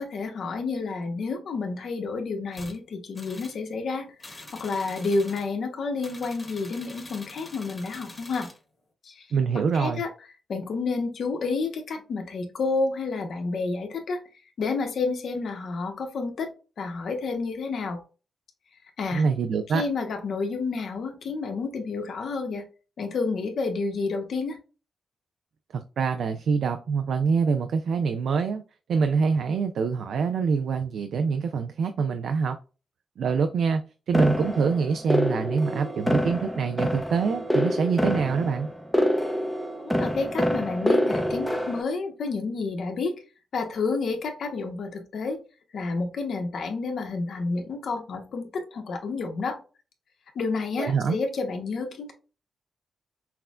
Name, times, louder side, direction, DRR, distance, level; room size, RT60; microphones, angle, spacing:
voice 1, 0.0-8.5 9.0-9.3 9.5-10.1 10.5-14.2 14.6-16.5 16.8-18.0 19.0-19.2 19.7-22.7 23.0-24.6 39.8-43.2 43.5-45.4 45.7-49.6 50.3-52.1, left 4 dB, 65° left, 1.0 m, -30 dB
sound 1, 2.5-2.8 3.1-3.6 4.2-5.5 6.0-8.6, left 2 dB, 25° left, 1.3 m, -45 dB
voice 2, 9.3-10.0 19.1-19.8 25.7-28.6 28.9-32.6 33.2-33.8 34.1-38.7 50.8-51.2, right 5 dB, 75° right, 0.4 m, -25 dB
sound 2, 34.1-41.8, equal, ahead, 0.6 m, -26 dB
5.7 x 2.2 x 2.4 m
cardioid pair, 110°, 0 cm